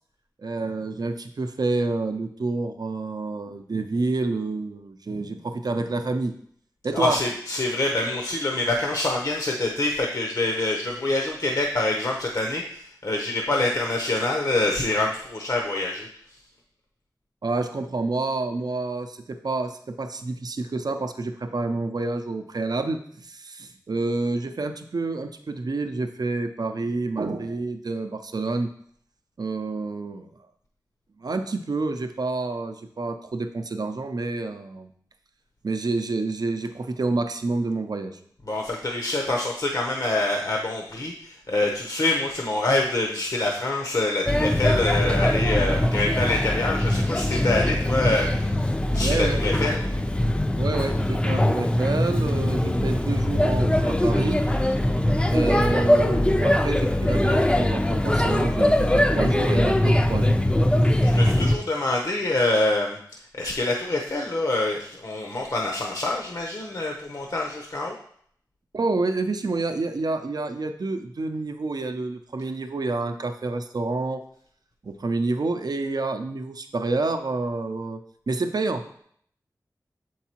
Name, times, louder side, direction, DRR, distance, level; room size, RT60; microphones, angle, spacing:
voice 1, 0.4-6.3 6.8-7.2 17.4-28.7 29.4-30.3 31.2-34.9 35.6-38.2 49.0-49.4 50.6-54.4 55.3-60.4 68.7-74.2 74.8-78.0 78.3-79.0, right 3 dB, 65° right, 7 dB, 0.5 m, -28 dB
voice 2, 6.9-16.1 38.5-49.8 61.0-63.0 63.4-68.0, left 2 dB, 55° left, -1 dB, 0.8 m, -26 dB
Male speech man speaking / Child speech kid speaking / Chatter, 44.3-61.6, left 1 dB, 15° left, 0.4 m, -22 dB
7.1 x 4.6 x 2.9 m, 0.65 s
cardioid pair, 40°, 7 cm